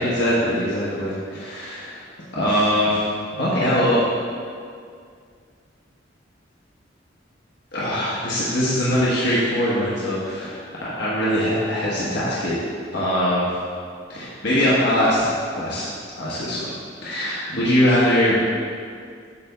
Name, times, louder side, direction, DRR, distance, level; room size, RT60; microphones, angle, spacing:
voice 1, 0.0-2.0 2.3-3.0 3.3-4.0 7.7-12.6 12.9-13.5 14.1-15.9 16.2-16.7 17.0-18.4, equal, 65° left, -8 dB, 1.3 m, -22 dB
8.4 x 3.5 x 6.7 m, 2.2 s
head